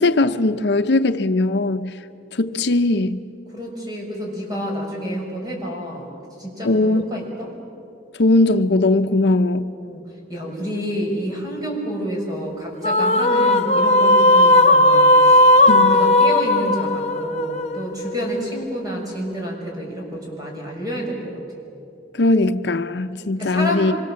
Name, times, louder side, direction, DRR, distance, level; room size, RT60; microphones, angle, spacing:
voice 1, 0.0-2.0 2.3-3.2 6.6-7.1 8.2-9.7 15.7-16.0 22.1-23.9, left 2 dB, 65° left, 0.7 m, -19 dB
voice 2, 3.5-6.1 6.4-7.5 9.8-10.0 10.3-21.4 23.4-23.9, equal, 20° right, 6.1 m, -29 dB
sound 1, 12.8-18.3, left 1 dB, 35° left, 1.0 m, -15 dB
25.5 x 25.0 x 7.5 m
head